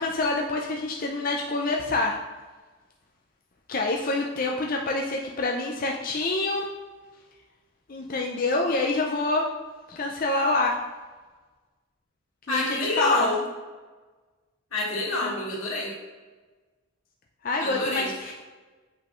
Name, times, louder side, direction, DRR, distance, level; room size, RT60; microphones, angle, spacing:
voice 1, 0.0-2.2 3.7-6.7 7.9-9.5 9.9-10.8 12.5-13.3 15.2-15.3 17.4-18.4, left 2 dB, 45° left, 0 dB, 0.5 m, -26 dB
voice 2, 12.5-13.4 14.7-16.0 17.6-18.1, left 2 dB, 90° left, -4 dB, 2.1 m, -27 dB
7.5 x 5.2 x 3.1 m, 1.3 s
head